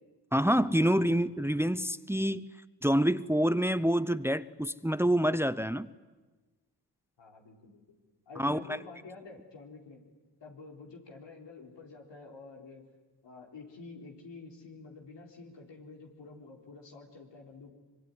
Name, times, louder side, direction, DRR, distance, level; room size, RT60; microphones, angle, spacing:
voice 1, 0.3-2.4 2.8-5.9 8.4-8.6, equal, 5° right, 15 dB, 0.9 m, -27 dB
voice 2, 7.2-8.0 8.3-10.0 10.4-12.9 13.2-17.7, left 3 dB, 85° left, 1 dB, 4.1 m, -49 dB
25.0 x 23.5 x 9.9 m, 1.2 s
cardioid pair, 50°, 42 cm